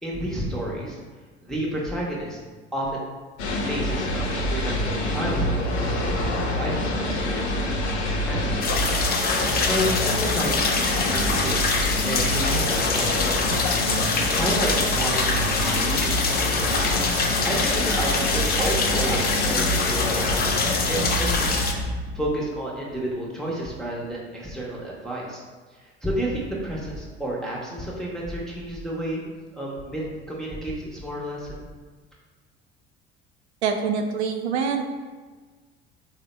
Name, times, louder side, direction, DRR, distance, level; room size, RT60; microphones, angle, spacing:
voice 1, 0.0-1.0 1.4-2.4 2.7-3.1 3.7-7.8 8.2-9.0 9.7-10.7 10.9-11.7 12.0-13.6 14.3-16.6 17.4-20.3 20.9-21.6 22.1-25.4 25.8-29.2 29.5-31.6, right 1 dB, ahead, -5 dB, 0.8 m, -31 dB
sound 1, 3.4-22.4, left 1 dB, 80° left, 0.6 m, -26 dB
sound 2, 8.6-21.7, left 4 dB, 30° left, 0.6 m, -25 dB
voice 2, 33.6-34.8, right 6 dB, 85° right, 5 dB, 0.5 m, -25 dB
3.4 x 2.1 x 4.1 m, 1.4 s
hypercardioid pair, 65°, 33 cm